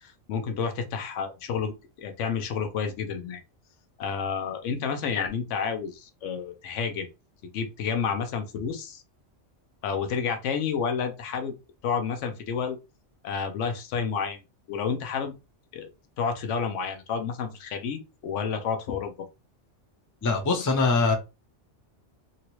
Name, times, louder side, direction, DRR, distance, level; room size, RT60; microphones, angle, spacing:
voice 1, 0.0-3.4 4.0-7.1 7.5-9.0 9.8-11.5 11.8-12.8 13.2-14.4 14.7-15.3 15.7-15.9 16.2-19.1, left 6 dB, 85° left, 7 dB, 1.0 m, -30 dB
voice 2, 20.2-21.1, left 3 dB, 25° left, 4 dB, 0.4 m, -22 dB
2.8 x 2.8 x 3.0 m, 0.27 s
omnidirectional pair, 1.2 m